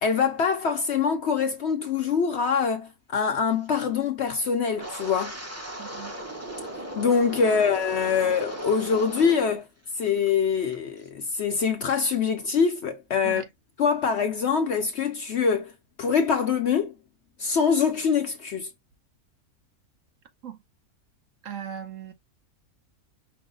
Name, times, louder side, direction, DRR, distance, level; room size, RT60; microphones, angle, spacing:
voice 1, 0.0-5.4 7.0-9.7 10.0-13.4 13.8-15.7 16.0-16.9 17.4-18.7, left 6 dB, 60° left, 0.7 m, -24 dB
Wind, 4.7-9.6 9.9-10.3 10.7-11.0, right 1 dB, 15° right, 0.7 m, -37 dB
voice 2, 5.8-6.2 13.2-13.5 20.4-20.6 21.4-22.1, right 9 dB, 60° right, 1.1 m, -38 dB
5.5 x 2.1 x 3.7 m
omnidirectional pair, 1.6 m